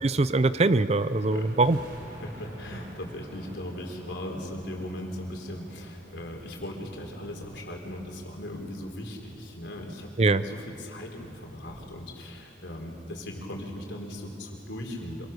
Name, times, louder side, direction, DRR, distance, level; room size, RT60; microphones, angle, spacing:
voice 1, 0.0-1.8 10.2-10.4, right 3 dB, 35° right, 14 dB, 0.6 m, -22 dB
sound 1, 1.0-11.9, right 1 dB, 55° right, 5.0 m, -48 dB
voice 2, 2.1-15.3, left 1 dB, 70° left, 1 dB, 4.0 m, -38 dB
27.0 x 24.0 x 6.8 m, 2.8 s
head